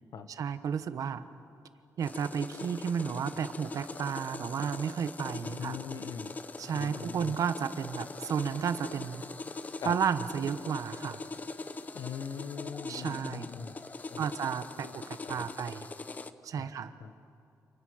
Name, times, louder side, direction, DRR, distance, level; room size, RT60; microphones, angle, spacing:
voice 1, 0.4-1.2 2.0-5.8 6.6-9.2 9.8-11.2 12.9-13.5 14.2-15.9 16.4-16.9, right 7 dB, 60° right, 11 dB, 1.1 m, -32 dB
sound 1, 2.0-16.3, left 3 dB, 25° left, 0.8 m, -42 dB
voice 2, 5.3-6.3 6.7-7.4 9.8-10.0 11.9-13.8 14.1-14.3 14.8-14.9 15.2-15.5 16.6-16.7 17.0-17.1, left 7 dB, 75° left, 10 dB, 1.3 m, -41 dB
29.5 x 28.0 x 6.5 m, 2.6 s
wide cardioid pair, 175°, 6 cm